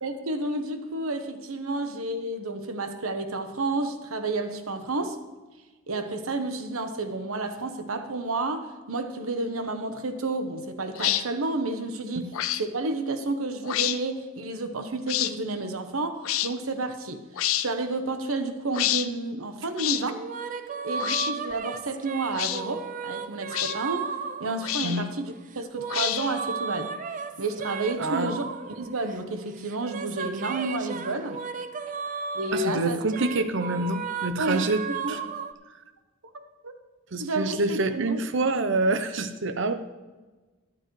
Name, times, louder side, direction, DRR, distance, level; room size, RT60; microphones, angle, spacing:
voice 1, 0.0-5.2 5.9-12.3 12.6-17.2 17.5-20.2 20.8-24.1 24.4-26.9 27.4-28.5 28.8-31.4 32.3-33.0 34.4-34.7 35.0-35.1 36.3-36.7 37.2-38.2, right 2 dB, 90° right, 8 dB, 1.1 m, -31 dB
sound 1, 11.0-11.2 12.3-12.6 13.6-14.0 15.1-15.3 16.2-16.5 17.4-17.7 18.7-19.1 19.8-20.0 21.0-21.3 22.3-22.6 23.5-23.8 24.6-25.1 25.9-26.4, left 13 dB, 75° left, 0.5 m, -27 dB
sound 2, 20.1-25.1 25.5-29.3 29.6-35.5, right 6 dB, 40° right, 0.5 m, -35 dB
voice 2, 28.0-28.3 32.5-35.2 37.1-39.7, right 2 dB, 60° right, 10 dB, 0.8 m, -26 dB
13.5 x 11.5 x 3.2 m, 1.2 s
head